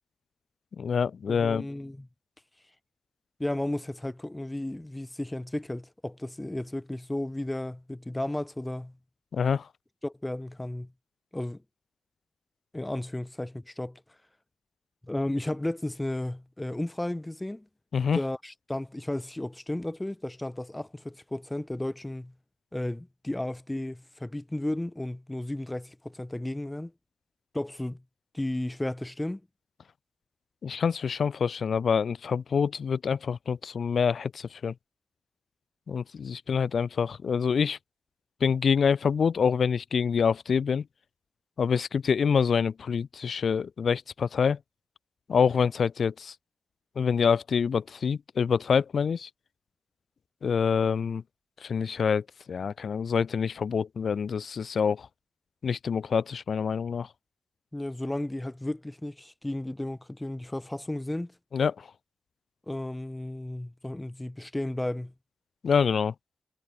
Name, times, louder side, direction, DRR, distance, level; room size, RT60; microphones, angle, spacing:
voice 1, 0.8-1.7 9.3-9.7 17.9-18.2 30.6-34.7 35.9-37.8 38.4-40.8 41.6-44.6 45.3-46.3 47.0-49.3 50.4-51.2 51.6-55.1 55.6-57.1 61.5-61.9 65.6-66.1, left 6 dB, 55° left, 0.5 m, -26 dB
voice 2, 1.3-2.1 3.4-8.9 10.0-10.9 11.3-11.6 12.7-14.0 15.1-17.7 18.1-22.3 22.7-26.9 27.5-28.0 28.3-29.4 57.7-61.3 62.7-65.1, left 1 dB, 10° left, 1.1 m, -33 dB
wide cardioid pair, 175°, 0 cm